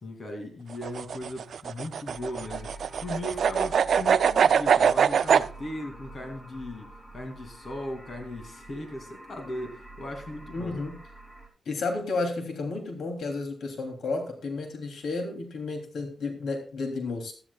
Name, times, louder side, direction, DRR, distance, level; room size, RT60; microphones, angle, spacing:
voice 1, 0.0-10.8, left 1 dB, 45° left, 3 dB, 2.7 m, -38 dB
sound 1, 0.7-5.5, right 7 dB, 70° right, 0.5 m, -23 dB
sound 2, 2.1-11.5, right 1 dB, 15° left, 3.0 m, -47 dB
voice 2, 10.5-10.9 11.6-17.3, left 3 dB, 85° left, 4 dB, 3.0 m, -32 dB
15.5 x 14.0 x 2.4 m, 0.38 s
wide cardioid pair, 125°, 0 cm